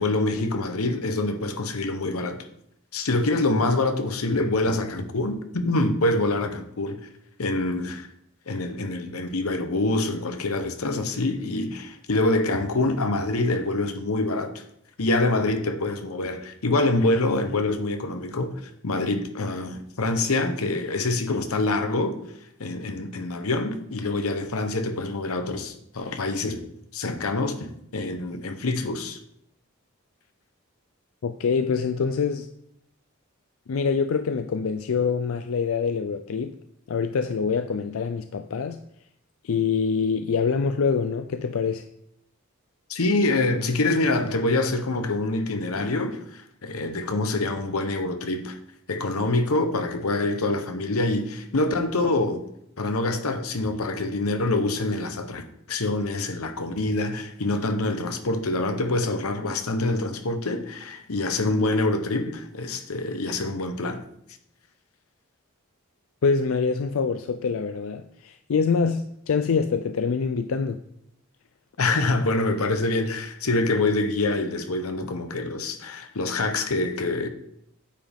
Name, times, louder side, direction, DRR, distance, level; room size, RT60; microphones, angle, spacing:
voice 1, 0.0-2.5 2.9-7.0 7.4-8.1 8.5-14.6 15.0-22.2 22.6-26.6 26.9-29.2 42.9-48.6 48.9-52.4 52.8-64.0 71.8-77.3, left 2 dB, 90° left, 0.9 m, -25 dB
voice 2, 31.2-32.5 33.7-36.6 36.9-38.8 39.4-41.9 66.2-70.8, left 5 dB, 65° left, 0.4 m, -25 dB
9.0 x 7.2 x 3.6 m
head